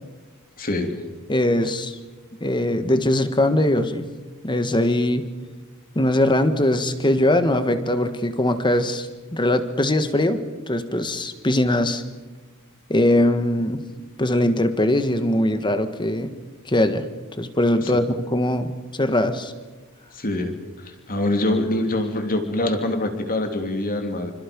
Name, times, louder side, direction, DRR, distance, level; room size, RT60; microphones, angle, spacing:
voice 1, 0.6-1.0 17.8-17.9 20.1-24.3, left 1 dB, 40° left, 5 dB, 3.2 m, -25 dB
voice 2, 1.3-2.0 2.4-4.1 4.4-5.3 5.9-12.0 12.9-13.8 14.2-16.3 16.7-17.1 17.4-19.5, left 1 dB, 20° left, 9 dB, 1.6 m, -21 dB
27.5 x 26.0 x 5.4 m, 1.3 s
head